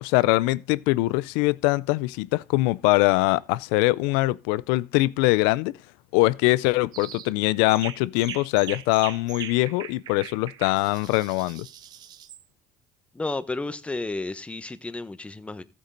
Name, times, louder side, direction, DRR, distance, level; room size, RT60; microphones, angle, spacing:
voice 1, 0.0-5.7 6.1-11.7, left 20 dB, 90° left, 0.5 m, -23 dB
sound 1, 6.9-7.3 7.7-12.4, right 10 dB, 60° right, 1.0 m, -40 dB
voice 2, 13.1-15.6, left 2 dB, 15° left, 1.2 m, -32 dB
14.5 x 8.6 x 4.0 m
supercardioid pair, 90°, 8 cm